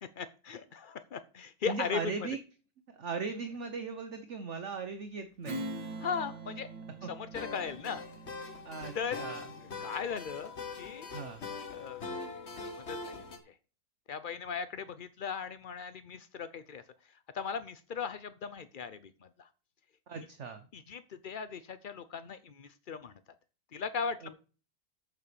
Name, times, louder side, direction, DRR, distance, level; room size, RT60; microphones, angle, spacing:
voice 1, 0.0-2.1 6.0-6.7 7.0-8.0 8.9-9.3 9.6-11.1 11.7-12.0 12.4-13.5 14.1-16.8 17.3-19.5 20.7-23.1 23.7-24.3, left 6 dB, 85° left, 12 dB, 0.4 m, -38 dB
voice 2, 1.7-2.4 2.9-5.6 7.0-7.1 8.6-8.9 9.2-9.4 11.1-11.4 20.1-20.7 24.2-24.3, right 5 dB, 45° right, 8 dB, 1.2 m, -38 dB
Strum, 5.4-10.3, right 2 dB, 90° right, 2.4 m, -44 dB
sound 1, 7.3-13.4, left 4 dB, 40° left, 1.7 m, -42 dB
8.2 x 7.3 x 6.8 m, 0.36 s
omnidirectional pair, 1.9 m